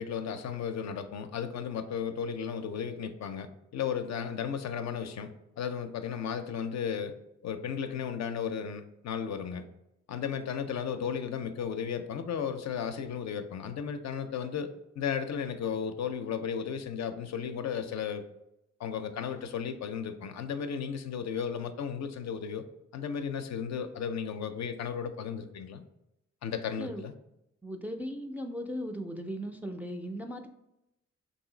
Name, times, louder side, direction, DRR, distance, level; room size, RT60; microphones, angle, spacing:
voice 1, 0.0-5.3 5.6-7.2 7.4-9.6 10.1-14.7 15.0-18.2 18.8-22.6 22.9-25.8 26.4-27.1, left 7 dB, 65° left, 8 dB, 0.4 m, -34 dB
voice 2, 27.6-30.5, equal, 5° right, 3 dB, 0.3 m, -37 dB
3.1 x 2.7 x 3.8 m, 0.86 s
cardioid pair, 70°, 30 cm